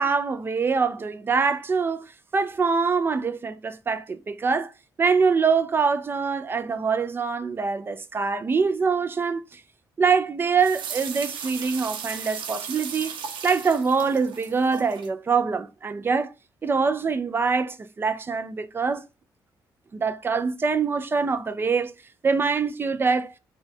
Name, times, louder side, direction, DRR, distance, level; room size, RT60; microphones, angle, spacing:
voice 1, 0.0-2.0 2.3-4.7 5.0-9.4 10.0-13.2 13.4-16.3 16.6-19.0 19.9-21.9 22.2-23.3, right 5 dB, 30° right, 0.3 m, -24 dB
sound 1, 10.6-15.1, right 7 dB, 90° right, 0.6 m, -36 dB
4.0 x 2.2 x 4.3 m
cardioid pair, 130°, 8 cm